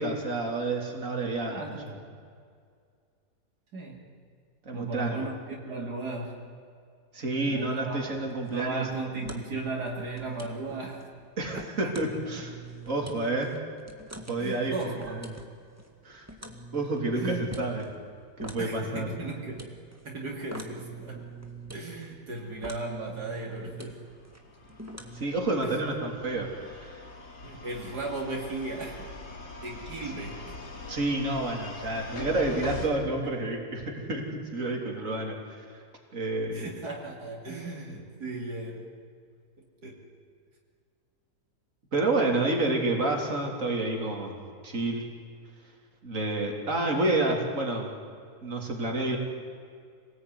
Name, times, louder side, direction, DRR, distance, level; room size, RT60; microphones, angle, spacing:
voice 1, 0.0-1.6 4.7-5.2 7.1-8.9 11.4-12.5 12.8-13.5 14.3-14.7 15.1-15.3 16.0-16.3 16.7-17.8 18.4-19.1 25.1-27.0 30.9-35.8 36.1-36.6 41.9-44.4 44.6-45.0 46.0-47.9 48.4-49.2, right 2 dB, 50° right, 1 dB, 3.8 m, -29 dB
voice 2, 1.5-2.0 3.7-4.0 4.7-6.5 7.5-8.2 8.5-11.1 11.5-11.9 14.4-15.3 17.1-17.6 18.6-19.6 20.0-21.3 21.7-24.1 25.6-25.8 27.4-29.1 29.6-30.6 32.9-33.3 34.7-34.8 36.5-38.9 39.6-40.0, right 2 dB, 75° right, -1 dB, 3.3 m, -36 dB
sound 1, 8.2-25.3, right 3 dB, 10° right, 1.9 m, -45 dB
sound 2, 24.0-32.9, left 2 dB, 80° left, 3.5 m, -43 dB
26.5 x 19.0 x 9.6 m, 2.2 s
omnidirectional pair, 1.7 m